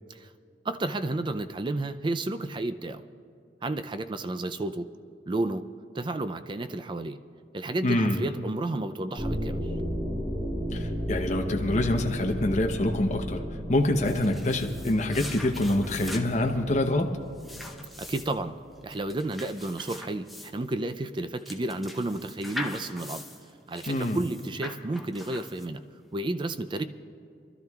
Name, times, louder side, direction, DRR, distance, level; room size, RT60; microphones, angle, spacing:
voice 1, 0.6-3.0 3.6-4.9 5.3-5.7 5.9-7.2 7.5-9.6 18.0-18.5 18.8-23.2 23.7-25.8 26.1-26.8, right 2 dB, 25° right, 10 dB, 0.4 m, -31 dB
voice 2, 7.8-8.3 10.7-17.1 23.9-24.2, left 1 dB, 40° left, 3 dB, 0.8 m, -26 dB
sound 1, 9.2-18.6, equal, 45° right, 2.6 m, -34 dB
sound 2, 13.8-26.0, left 1 dB, ahead, 0.7 m, -42 dB
29.0 x 12.0 x 2.4 m, 2.4 s
head